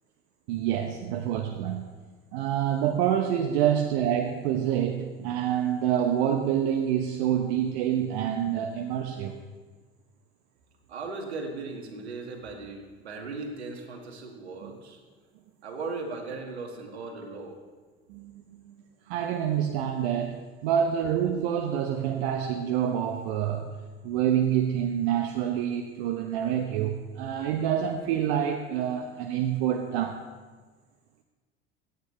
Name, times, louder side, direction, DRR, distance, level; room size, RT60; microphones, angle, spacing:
voice 1, 0.5-1.9 2.3-9.4 14.6-14.8 18.1-18.8 19.1-23.7 24.0-30.2, right 9 dB, 60° right, 5 dB, 1.0 m, -27 dB
voice 2, 10.9-15.0 15.6-17.6, right 3 dB, 80° right, 3 dB, 2.0 m, -37 dB
25.0 x 9.4 x 3.3 m, 1.4 s
figure-of-eight pair, 65°, 32 cm